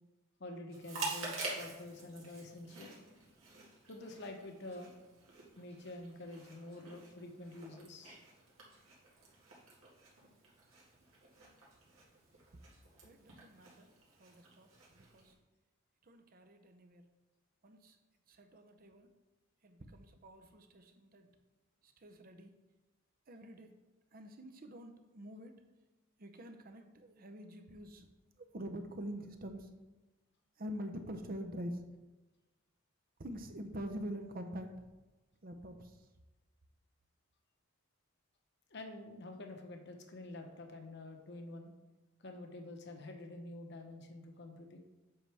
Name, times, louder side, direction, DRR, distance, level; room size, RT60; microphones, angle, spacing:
voice 1, 0.4-3.0 3.9-4.9 5.6-8.2 38.7-41.7 42.2-44.8, left 2 dB, 55° left, 4 dB, 0.9 m, -48 dB
Chewing mastication, 0.7-15.3, right 3 dB, 75° right, 1.9 m, -48 dB
voice 2, 13.0-13.9 14.2-15.3 16.0-17.0 17.6-18.0 18.3-19.1 19.6-21.3 21.8-22.6 23.3-23.7 24.1-25.6 26.2-28.1 28.4-29.7 30.6-31.8 33.2-34.7 35.4-36.1, equal, 45° right, 6 dB, 0.7 m, -46 dB
7.7 x 5.7 x 3.4 m, 1.1 s
head